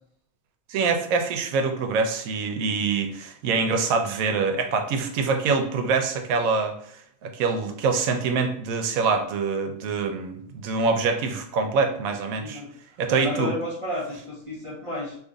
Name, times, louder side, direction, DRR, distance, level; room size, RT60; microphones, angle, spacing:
voice 1, 0.7-6.7 7.2-12.6 13.0-13.5, right 4 dB, 80° right, 5 dB, 1.0 m, -25 dB
voice 2, 12.4-12.7 13.1-15.2, left 1 dB, 35° right, -6 dB, 0.6 m, -32 dB
2.8 x 2.4 x 3.7 m, 0.65 s
omnidirectional pair, 1.4 m